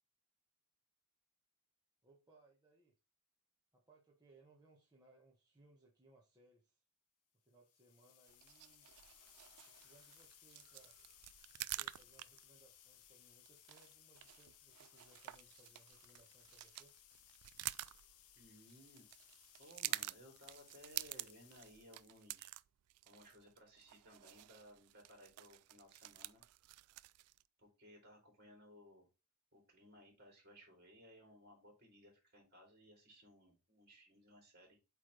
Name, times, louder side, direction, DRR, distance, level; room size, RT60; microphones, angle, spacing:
voice 1, 2.0-2.9 3.7-6.8 7.4-8.9 9.7-11.0 11.6-17.0, right 2 dB, 20° right, 1.3 m, -68 dB
sound 1, 7.5-22.5, left 11 dB, 80° left, 0.8 m, -64 dB
sound 2, 8.3-27.4, right 17 dB, 80° right, 0.3 m, -49 dB
voice 2, 18.3-19.1 19.6-22.5 23.1-26.4 27.6-29.1 29.5-34.8, equal, 45° right, 3.5 m, -61 dB
8.2 x 3.4 x 4.0 m
head